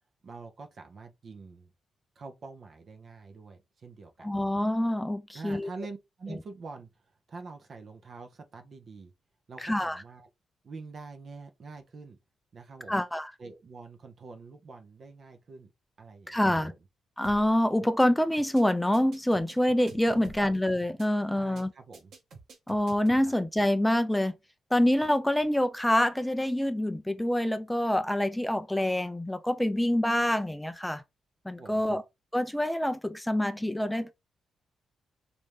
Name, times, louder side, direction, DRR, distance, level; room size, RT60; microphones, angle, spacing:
voice 1, 0.2-1.7 2.2-4.3 5.3-6.9 7.3-9.1 9.5-10.3 10.6-12.2 12.5-13.0 13.4-15.7 16.0-16.8 20.1-20.5 21.3-22.1 23.2-23.3 31.6-32.0, right 4 dB, 55° right, 0.6 m, -46 dB
voice 2, 4.2-5.7 9.6-10.0 12.9-13.3 16.3-16.7 17.2-21.7 22.7-24.3 24.7-31.0 31.5-32.0 32.3-34.1, left 1 dB, 5° left, 0.3 m, -26 dB
sound 1, 17.2-17.5 17.8-18.1 18.4-18.6 18.9-20.5 20.8-21.1 21.4-21.6 21.9-23.2, right 3 dB, 70° right, 1.0 m, -49 dB
3.1 x 2.6 x 3.4 m
cardioid pair, 70°, 0 cm